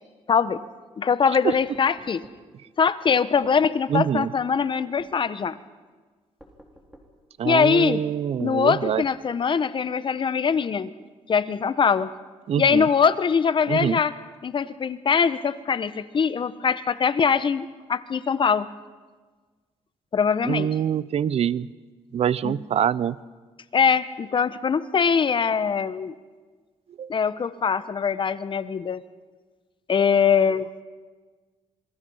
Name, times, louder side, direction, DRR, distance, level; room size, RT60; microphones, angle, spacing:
voice 1, 0.3-0.6 1.0-2.2 2.8-5.6 7.4-8.0 8.4-10.9 11.3-12.1 12.6-14.1 14.4-18.7 20.1-20.7 22.4-22.6 23.7-26.1 27.1-29.0 29.9-30.7, left 6 dB, 45° left, 14 dB, 0.9 m, -22 dB
sound 1, 1.5-2.4 3.4-3.6 4.2-4.4 5.0-5.2 6.4-7.1 8.4-9.2, equal, 5° right, 3.6 m, -49 dB
voice 2, 3.9-4.3 7.4-9.0 12.5-12.9 13.7-14.0 20.4-21.7 22.1-23.2 27.0-27.1, right 9 dB, 60° right, 19 dB, 0.6 m, -24 dB
27.5 x 20.5 x 5.6 m, 1.4 s
cardioid pair, 100°, 12 cm